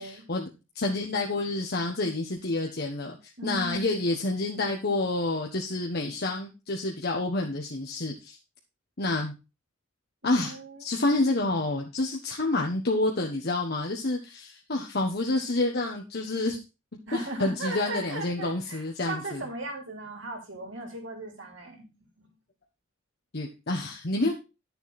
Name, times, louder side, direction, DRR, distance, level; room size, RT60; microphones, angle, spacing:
voice 1, 0.3-8.4 9.0-9.3 10.2-10.5 10.8-16.6 17.1-19.4 23.3-24.3, left 2 dB, 50° left, 1 dB, 1.2 m, -28 dB
voice 2, 3.4-4.0 10.2-10.9 17.1-21.9 22.2-22.3, right 2 dB, 65° right, 1 dB, 3.7 m, -37 dB
11.0 x 7.0 x 4.1 m, 0.28 s
head